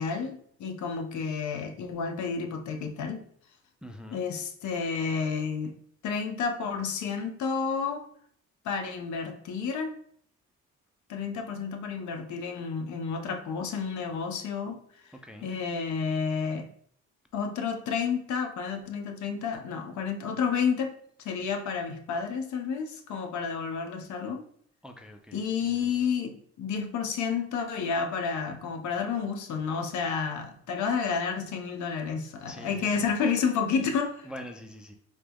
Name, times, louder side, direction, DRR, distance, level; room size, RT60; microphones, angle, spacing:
voice 1, 0.0-3.3 4.1-5.7 6.0-8.1 8.6-9.9 11.1-15.1 15.4-16.7 17.3-21.0 21.2-24.4 25.3-34.3, left 6 dB, 70° left, 4 dB, 0.7 m, -30 dB
voice 2, 3.8-4.2 15.2-15.5 24.8-25.5 25.8-26.1 32.5-33.1 34.2-34.9, equal, 5° right, 5 dB, 0.3 m, -44 dB
4.1 x 2.3 x 3.4 m, 0.63 s
cardioid pair, 90°, 30 cm